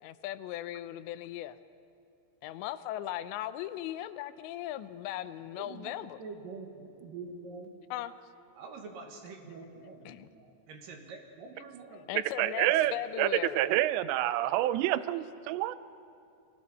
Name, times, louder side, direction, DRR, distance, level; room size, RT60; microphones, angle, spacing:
voice 1, 0.0-1.6 2.4-6.2 7.9-8.1 9.9-10.3 12.0-13.7, left 13 dB, 85° left, 13 dB, 2.9 m, -38 dB
voice 2, 5.5-7.8 8.5-12.1 12.8-13.0, right 4 dB, 60° right, 3 dB, 2.8 m, -46 dB
voice 3, 12.4-13.3 13.6-15.8, right 14 dB, 90° right, 15 dB, 2.9 m, -28 dB
30.0 x 20.5 x 4.2 m, 2.6 s
omnidirectional pair, 5.0 m